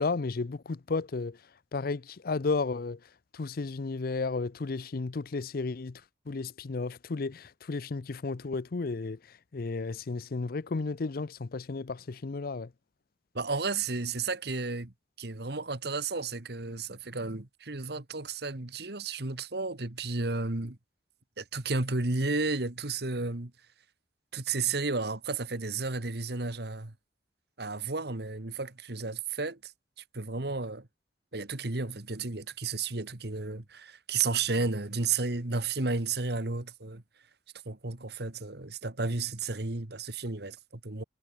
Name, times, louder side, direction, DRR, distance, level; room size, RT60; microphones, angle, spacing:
voice 1, 0.0-1.4 1.7-3.0 3.3-6.0 6.3-9.2 9.5-12.7, left 3 dB, 55° left, 0.6 m, -33 dB
voice 2, 13.3-14.9 15.2-20.8 21.4-23.5 24.3-26.9 27.6-29.7 30.1-30.9 31.3-37.0 37.7-41.0, right 3 dB, 65° right, 1.8 m, -32 dB
head